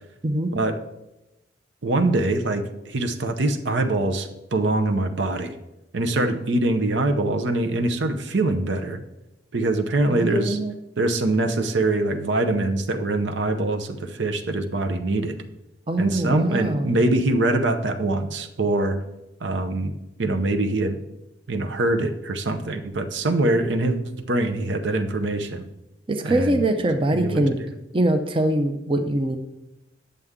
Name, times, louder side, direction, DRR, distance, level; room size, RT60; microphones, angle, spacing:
voice 1, 1.8-5.5 5.9-9.0 9.5-10.6 11.0-15.4 16.0-19.0 19.4-19.9 20.2-21.0 21.5-25.6 26.2-26.7 27.1-27.7, right 2 dB, 75° right, 7 dB, 0.7 m, -23 dB
voice 2, 10.1-10.7 15.9-17.0 26.1-27.6 27.9-29.4, right 1 dB, 30° right, 7 dB, 0.5 m, -23 dB
9.4 x 6.8 x 3.6 m, 0.92 s
head